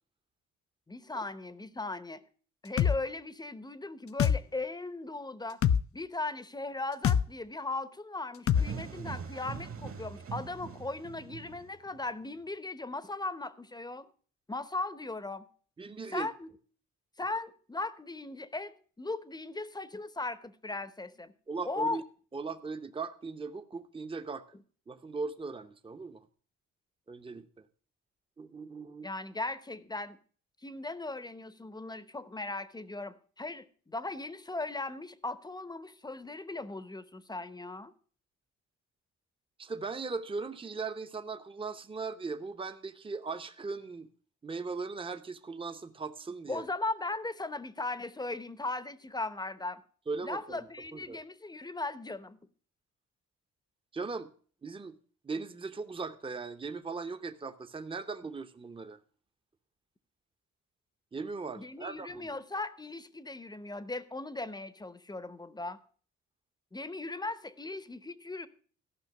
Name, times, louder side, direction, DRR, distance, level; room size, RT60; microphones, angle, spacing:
voice 1, 0.9-2.2 2.6-5.6 5.9-14.1 14.5-15.5 16.1-16.5 17.2-21.3 21.6-22.0 29.0-30.2 30.6-37.9 46.5-49.8 50.2-52.4 61.6-65.8 66.7-68.5, left 2 dB, 15° left, 0.8 m, -38 dB
sound 1, 2.8-3.0 4.2-4.4 5.6-5.8 7.0-7.2 8.5-8.7, left 8 dB, 50° left, 0.5 m, -23 dB
sound 2, 8.5-12.1, right 6 dB, 45° right, 1.4 m, -42 dB
voice 2, 15.8-16.3 21.5-22.0 22.3-24.4 24.9-26.2 27.1-27.7 28.4-29.1 39.6-44.1 44.4-46.6 50.1-50.7 50.9-51.2 53.9-54.3 54.6-55.0 55.2-59.0 61.1-62.4, right 4 dB, 15° right, 0.8 m, -39 dB
13.5 x 5.6 x 6.5 m
cardioid pair, 90°, 30 cm